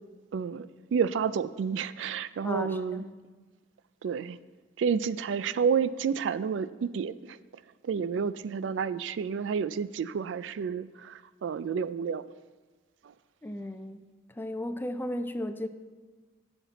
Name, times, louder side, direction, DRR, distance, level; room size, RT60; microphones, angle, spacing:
voice 1, 0.3-3.0 4.0-4.4 4.8-7.4 7.8-12.2 13.0-13.1, right 6 dB, 80° right, 16 dB, 0.3 m, -30 dB
voice 2, 2.4-3.2 8.0-8.1 13.4-14.1 14.4-15.7, left 1 dB, 10° left, 9 dB, 0.4 m, -35 dB
13.5 x 5.9 x 4.0 m, 1.4 s
head